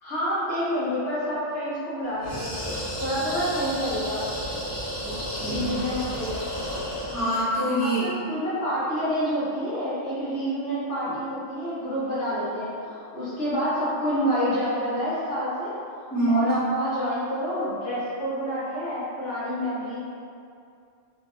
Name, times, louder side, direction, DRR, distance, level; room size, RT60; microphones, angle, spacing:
voice 1, 0.0-2.5 3.0-4.2 5.4-6.4 7.8-15.7 16.0-20.0, equal, 85° left, -10 dB, 1.4 m, -28 dB
sound 1, 2.2-7.5, equal, 40° left, 0.9 m, -32 dB
voice 2, 5.0-5.8 7.1-8.1 16.1-16.5, right 1 dB, 15° right, -13 dB, 1.2 m, -25 dB
3.1 x 2.5 x 2.4 m, 2.5 s
omnidirectional pair, 1.2 m